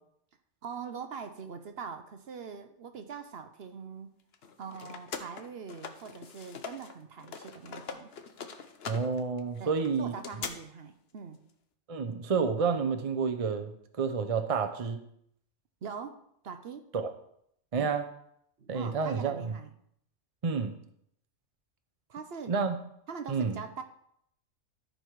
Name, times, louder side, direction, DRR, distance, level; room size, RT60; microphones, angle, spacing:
voice 1, 0.6-4.1 4.6-8.1 9.6-11.4 15.8-16.9 17.8-18.0 18.6-19.7 22.1-22.5 23.1-23.8, right 6 dB, 55° right, 8 dB, 0.9 m, -42 dB
sound 1, 4.3-6.9 7.2-10.5, left 6 dB, 55° left, 1.0 m, -42 dB
voice 2, 8.9-10.1 11.9-15.0 16.9-17.1 17.7-18.1 18.7-19.5 20.4-20.8 22.5-22.8 23.3-23.6, right 5 dB, 35° right, 7 dB, 0.6 m, -29 dB
13.5 x 5.2 x 4.7 m, 0.71 s
omnidirectional pair, 1.3 m